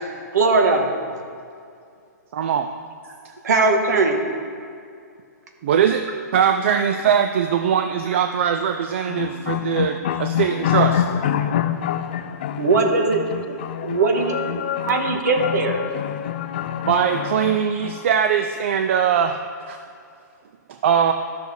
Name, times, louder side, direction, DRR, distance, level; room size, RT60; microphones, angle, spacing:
voice 1, 0.3-0.9 3.4-4.2 12.6-13.5 13.8-15.8, right 3 dB, 65° right, 3 dB, 1.4 m, -20 dB
voice 2, 2.3-2.7 3.2-3.3 5.6-6.0 6.3-11.0 16.8-19.4 19.7-19.8 20.7-21.1, right 8 dB, 40° right, 6 dB, 0.4 m, -21 dB
voice 3, 9.1-17.6 17.8-18.0, left 10 dB, 35° left, 10 dB, 0.4 m, -26 dB
13.0 x 6.5 x 3.4 m, 2.3 s
hypercardioid pair, 165°, 10 cm